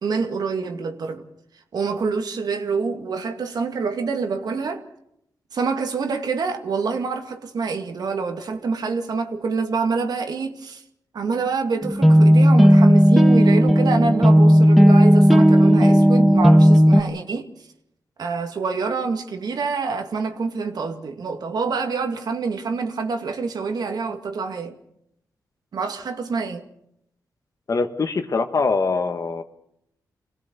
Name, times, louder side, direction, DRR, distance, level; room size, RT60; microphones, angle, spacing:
voice 1, 0.0-1.3 1.7-4.8 5.5-10.8 11.1-17.5 18.2-24.8 25.7-26.6, right 4 dB, 70° right, 2.1 m, -26 dB
sound 1, 11.8-17.0, equal, ahead, 1.8 m, -13 dB
voice 2, 27.7-29.4, left 4 dB, 50° left, 1.7 m, -23 dB
25.5 x 17.0 x 6.9 m
cardioid pair, 65°, 7 cm